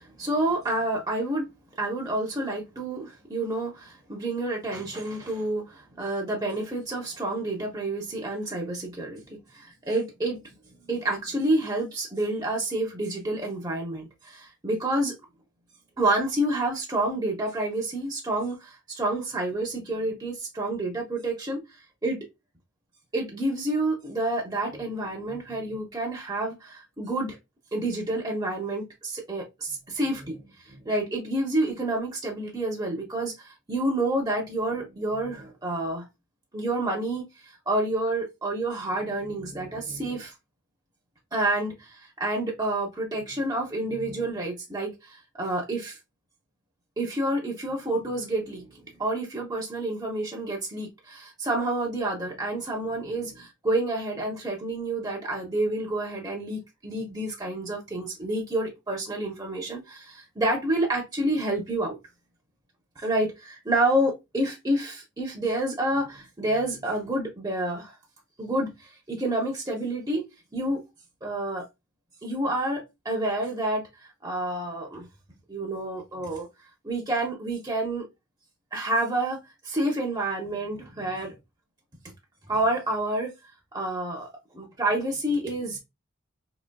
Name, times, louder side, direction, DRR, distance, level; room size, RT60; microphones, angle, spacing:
voice 1, 0.0-1.5 1.8-9.2 9.5-10.4 10.9-15.1 16.0-22.2 23.1-27.4 27.7-36.0 36.5-40.3 41.3-46.0 47.0-62.0 63.0-67.9 68.4-70.3 70.5-70.8 71.2-71.6 72.2-75.1 75.5-76.5 76.8-78.0 78.7-81.3 82.5-83.3 83.7-85.8, right 1 dB, 20° right, 0.7 m, -29 dB
4.0 x 2.9 x 2.2 m
head